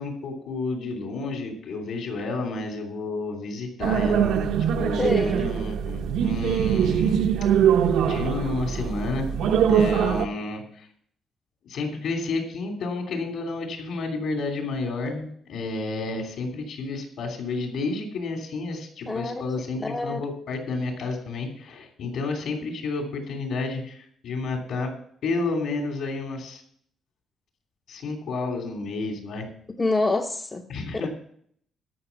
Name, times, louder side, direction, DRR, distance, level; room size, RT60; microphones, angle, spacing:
voice 1, 0.0-7.2 8.0-10.9 11.6-24.9 25.2-26.6 27.9-29.5 30.7-31.1, left 3 dB, 60° left, 2 dB, 3.1 m, -31 dB
sound 1, 3.8-10.3, right 8 dB, 75° right, 0.7 m, -22 dB
voice 2, 5.0-5.4 19.1-19.3 19.8-20.2 29.8-30.6, left 2 dB, 15° left, 5 dB, 0.6 m, -26 dB
12.5 x 6.2 x 7.1 m, 0.64 s
cardioid pair, 170°, 0 cm